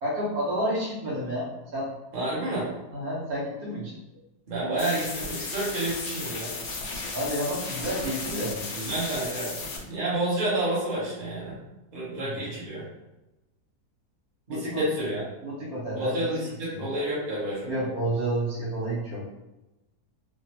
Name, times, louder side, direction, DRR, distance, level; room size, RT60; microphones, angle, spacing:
voice 1, 0.0-1.9 2.9-3.9 7.1-8.7 12.1-12.4 14.5-14.9 15.4-16.2 16.7-16.9 17.7-19.2, right 1 dB, 70° right, -6 dB, 1.2 m, -30 dB
voice 2, 2.1-2.7 4.5-6.6 8.8-11.5 11.9-12.8 14.5-15.2 16.0-17.9, right 1 dB, 40° right, -7 dB, 1.0 m, -30 dB
sound 1, 4.8-9.8, left 3 dB, 75° left, 0.6 m, -35 dB
3.0 x 2.2 x 2.8 m, 1.0 s
omnidirectional pair, 1.7 m